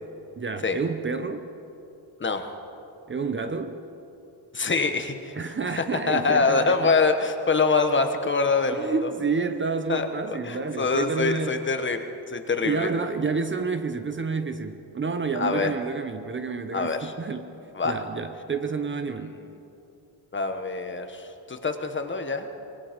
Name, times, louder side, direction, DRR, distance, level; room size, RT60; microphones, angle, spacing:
voice 1, 0.4-1.5 3.1-3.8 5.4-7.0 8.8-11.5 12.6-17.5 17.8-19.3, right 4 dB, 30° right, 8 dB, 0.8 m, -29 dB
voice 2, 2.2-2.5 4.5-9.1 9.9-12.9 15.3-15.7 16.7-17.1 17.7-18.0 20.3-22.5, left 4 dB, 25° left, 7 dB, 1.2 m, -25 dB
26.0 x 20.5 x 5.2 m, 2.9 s
wide cardioid pair, 160°, 42 cm